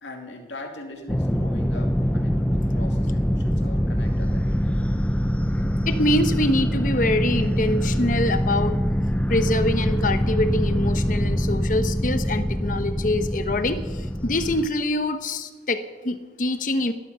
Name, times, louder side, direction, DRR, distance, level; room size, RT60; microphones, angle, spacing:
voice 1, 0.0-4.9, left 1 dB, 80° left, 2 dB, 2.7 m, -41 dB
sound 1, 1.1-14.7, equal, 10° left, 0.5 m, -24 dB
voice 2, 5.9-8.8 9.3-16.9, left 1 dB, 45° left, 10 dB, 1.0 m, -25 dB
19.5 x 12.5 x 5.6 m, 1.3 s
head